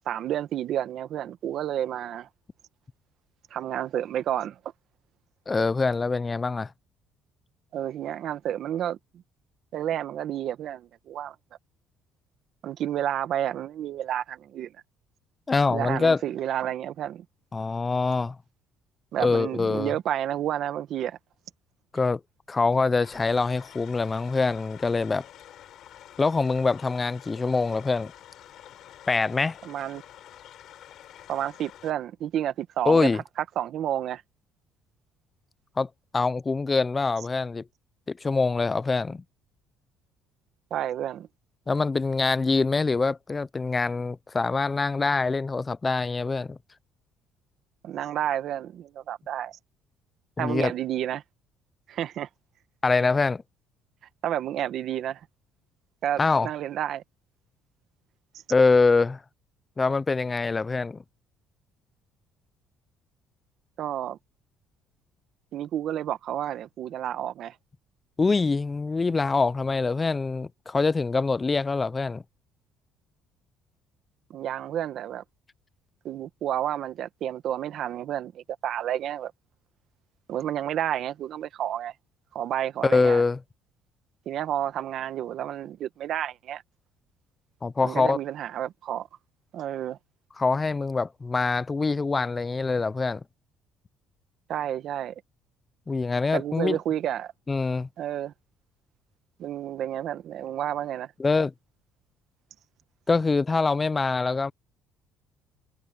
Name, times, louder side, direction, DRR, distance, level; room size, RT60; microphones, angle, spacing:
voice 1, 0.0-2.3 3.5-4.6 7.7-9.0 9.7-11.3 12.6-14.7 15.7-17.2 19.1-21.2 29.6-30.0 31.3-33.1 33.5-34.2 40.7-41.3 47.8-49.6 50.4-51.2 51.9-52.3 54.2-55.2 56.0-57.0 63.8-64.2 65.5-67.5 74.3-75.2 76.0-79.3 80.3-81.9 82.3-83.2 84.2-86.6 87.8-89.1 89.5-90.0 94.5-95.1 96.3-97.3 98.0-98.3 99.4-101.1, right 11 dB, 60° right, 1.6 m, -30 dB
voice 2, 5.5-6.7 15.5-16.2 17.5-18.4 19.2-19.9 21.9-22.2 22.5-25.2 26.2-28.1 29.1-29.6 32.9-33.2 35.8-37.6 38.1-39.2 41.7-46.6 50.4-50.7 52.8-53.4 56.2-56.5 58.5-59.2 59.8-61.0 68.2-72.2 82.8-83.4 87.6-88.2 90.4-93.2 95.9-96.8 97.5-97.9 101.2-101.5 103.1-104.5, left 4 dB, 20° left, 0.4 m, -24 dB
sound 1, 23.0-31.9, left 11 dB, 60° left, 7.3 m, -48 dB
cardioid pair, 110°, 0 cm